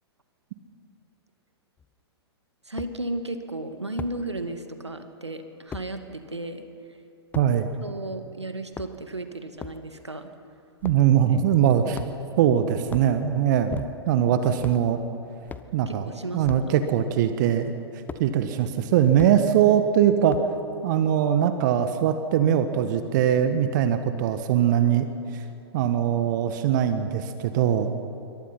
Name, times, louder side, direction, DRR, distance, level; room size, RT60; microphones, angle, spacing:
sound 1, 1.8-1.9 2.8-2.9 4.0-4.2 5.7-5.9 7.3-7.5 8.6-9.1 9.6-9.8 10.8-11.1 11.9-12.3 12.8-13.1 13.7-14.2 14.6-14.9 15.5-15.7 16.4-16.7 18.1-18.3 19.2-19.4 20.3-20.6, left 6 dB, 10° left, 0.9 m, -38 dB
voice 1, 2.7-7.0 7.8-10.3 11.3-11.4 14.4-14.5 15.9-16.5, right 2 dB, 85° right, 7 dB, 2.1 m, -34 dB
voice 2, 7.3-7.7 10.8-12.0 12.4-15.0 15.7-16.1 16.3-17.7 18.2-20.4 20.8-25.4 25.7-27.9, right 9 dB, 45° right, 9 dB, 1.5 m, -21 dB
27.0 x 24.0 x 5.9 m, 2.7 s
figure-of-eight pair, 105°, 14 cm